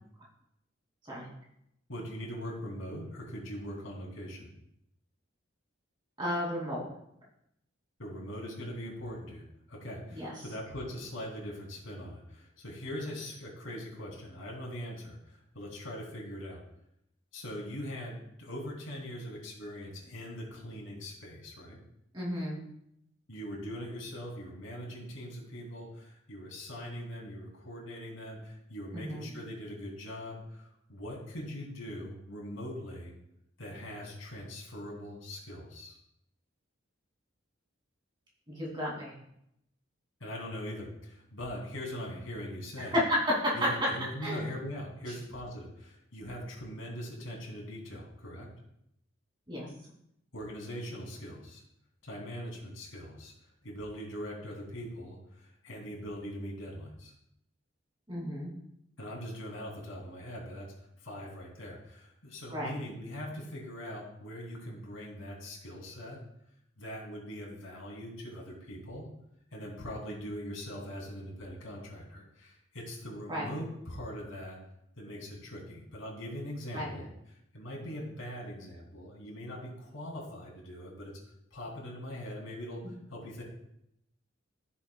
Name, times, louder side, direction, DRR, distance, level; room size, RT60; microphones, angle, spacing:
voice 1, 1.9-4.5 8.0-16.6 17.3-21.8 23.3-33.1 33.6-36.0 40.2-42.9 43.5-48.5 50.3-51.6 52.0-53.3 53.6-57.1 59.0-60.7 61.0-66.2 66.8-69.1 69.5-74.6 75.0-81.1 81.5-83.4, equal, 80° left, -2 dB, 2.9 m, -41 dB
voice 2, 6.2-6.9 10.1-10.3 22.1-22.6 28.9-29.3 38.5-39.1 42.9-43.5 44.2-44.4 49.5-49.7 58.1-58.5 62.5-62.7 73.3-73.5 76.7-76.9, left 1 dB, 25° right, -4 dB, 2.7 m, -32 dB
14.5 x 7.1 x 2.3 m, 0.78 s
head